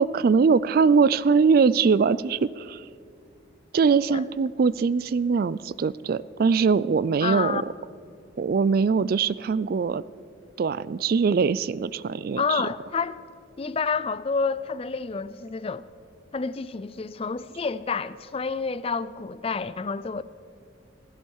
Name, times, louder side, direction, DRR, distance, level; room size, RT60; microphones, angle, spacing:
voice 1, 0.0-2.9 3.7-7.6 8.4-10.0 10.6-12.6, right 5 dB, 50° right, 0.3 m, -22 dB
voice 2, 7.2-7.6 12.4-13.2 13.6-15.8 16.3-20.2, left 5 dB, 30° left, 0.4 m, -29 dB
16.5 x 15.5 x 4.7 m
head